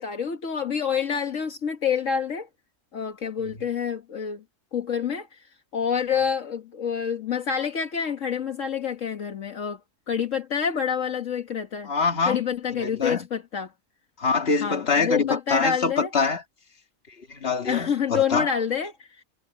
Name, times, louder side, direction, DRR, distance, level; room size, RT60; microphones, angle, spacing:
voice 1, 0.0-2.5 2.9-4.4 4.7-5.3 5.7-9.8 10.1-11.9 12.3-13.7 14.6-16.1 17.7-19.2, left 7 dB, 70° left, 1.8 m, -27 dB
voice 2, 11.9-12.4 12.7-13.3 14.2-16.4 17.3-18.5, left 4 dB, 50° left, 2.2 m, -24 dB
omnidirectional pair, 1.4 m